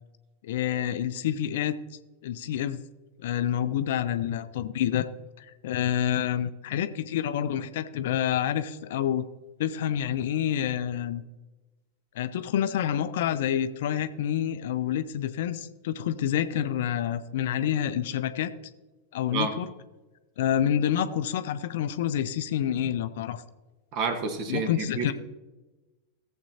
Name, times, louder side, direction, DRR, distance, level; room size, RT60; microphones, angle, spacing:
voice 1, 0.4-1.8 2.2-2.8 3.2-5.0 5.4-9.3 9.6-11.2 12.2-18.5 19.1-19.7 20.4-23.4 24.5-25.1, left 10 dB, 55° left, 13 dB, 0.5 m, -28 dB
voice 2, 23.9-25.1, right 4 dB, 40° right, 8 dB, 1.3 m, -29 dB
17.0 x 7.5 x 2.8 m, 1.1 s
figure-of-eight pair, 90°, 0 cm